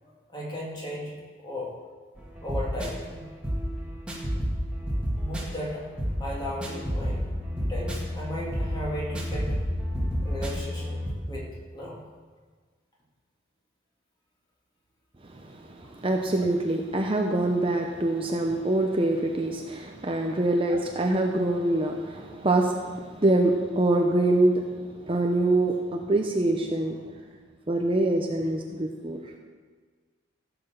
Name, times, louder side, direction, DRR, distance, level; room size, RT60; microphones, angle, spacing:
voice 1, 0.0-1.7 2.4-3.3 5.2-5.8 6.2-7.2 7.5-9.6 10.2-11.0 11.3-12.0 20.2-20.3, equal, 20° left, -4 dB, 2.7 m, -36 dB
sound 1, 2.2-11.1, equal, 5° right, 1.9 m, -30 dB
voice 2, 15.3-27.0 27.7-29.3, right 2 dB, 25° right, 2 dB, 0.7 m, -25 dB
15.0 x 6.0 x 6.9 m, 1.5 s
head